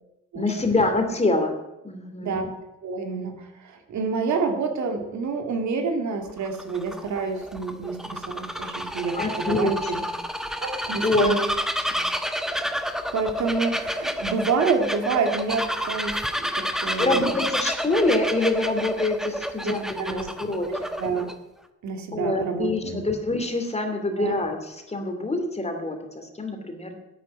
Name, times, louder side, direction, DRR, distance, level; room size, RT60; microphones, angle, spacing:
voice 1, 0.3-1.6 1.8-2.5 9.1-10.2 11.0-11.3 11.9-12.1 17.0-20.9 22.1-27.0, left 2 dB, 20° left, 5 dB, 2.7 m, -25 dB
voice 2, 2.8-10.0 10.6-11.5 13.1-17.2 19.6-19.7 20.0-20.3 20.7-21.3 21.8-23.0 24.2-24.4, right 4 dB, 70° right, 5 dB, 2.4 m, -28 dB
Bird vocalization bird call bird song, 6.3-21.3, equal, ahead, 1.1 m, -29 dB
11.0 x 9.1 x 8.6 m, 0.94 s
cardioid pair, 90°, 30 cm